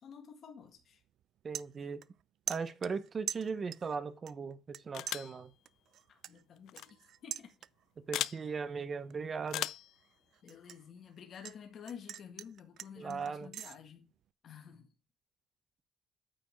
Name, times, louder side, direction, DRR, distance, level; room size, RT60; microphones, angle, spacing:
voice 1, 0.0-1.0 6.1-7.5 10.4-14.1 14.4-14.9, left 7 dB, 65° left, 1.7 m, -51 dB
sound 1, 0.6-0.8 1.2-2.2 2.5-4.0 4.3-4.8 5.1-8.0 8.4-8.7 9.1-11.6 11.9-13.8, right 11 dB, 75° right, 0.3 m, -44 dB
voice 2, 1.4-2.0 2.5-5.5 8.0-9.7 13.0-13.5, right 5 dB, 45° right, 0.9 m, -38 dB
sound 2, 4.9-5.4 6.7-6.9 8.1-8.4 9.5-9.9, left 13 dB, 85° left, 0.4 m, -36 dB
9.0 x 5.1 x 4.6 m
cardioid pair, 90°, 0 cm